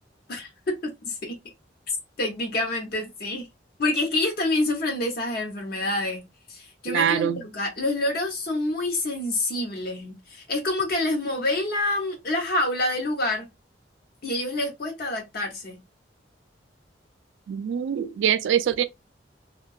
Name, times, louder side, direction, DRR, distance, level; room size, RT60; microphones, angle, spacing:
voice 1, 0.3-1.3 2.2-3.5 3.8-6.2 6.5-13.5 14.2-15.8, left 2 dB, 55° left, 0.6 m, -27 dB
voice 2, 6.9-7.4 17.5-18.8, right 9 dB, 80° right, 0.3 m, -24 dB
2.6 x 2.2 x 2.3 m
head